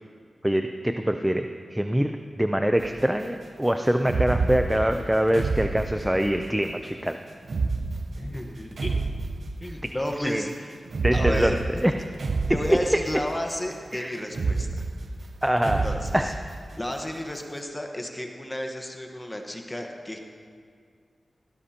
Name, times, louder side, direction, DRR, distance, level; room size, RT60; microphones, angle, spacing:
voice 1, 0.4-7.2 9.8-9.9 10.2-10.5 11.0-11.9 12.5-13.0 13.9-14.2 15.4-15.9 16.1-16.4, equal, 5° right, 6 dB, 0.6 m, -24 dB
sound 1, 2.8-3.1 4.0-6.5 7.4-10.0 10.9-13.4 14.3-16.9, right 3 dB, 70° right, 0.6 m, -29 dB
voice 2, 8.1-9.0 9.6-10.8 11.1-11.6 12.5-14.9 15.6-16.3 16.7-20.2, left 1 dB, 20° left, 2 dB, 1.3 m, -32 dB
18.0 x 16.5 x 2.9 m, 2.1 s
wide cardioid pair, 70°, 0 cm